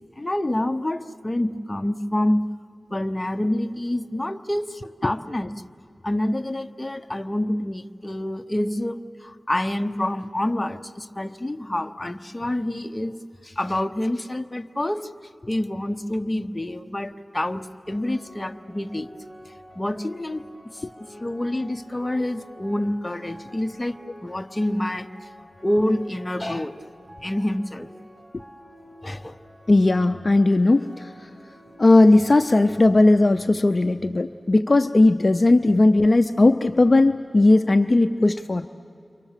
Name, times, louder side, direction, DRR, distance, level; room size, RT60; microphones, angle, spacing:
voice 1, 0.2-2.5 2.9-5.5 6.0-13.2 13.4-15.1 15.5-19.1 19.8-20.4 20.7-25.3 25.6-26.7 27.2-27.9 29.0-29.4, left 1 dB, 25° left, 7 dB, 0.9 m, -27 dB
sound 1, 17.8-33.0, equal, 45° right, 7.8 m, -48 dB
voice 2, 29.7-31.3 31.8-38.7, left 2 dB, 45° left, 8 dB, 0.5 m, -17 dB
29.5 x 24.0 x 7.4 m, 2.6 s
wide cardioid pair, 70°, 0 cm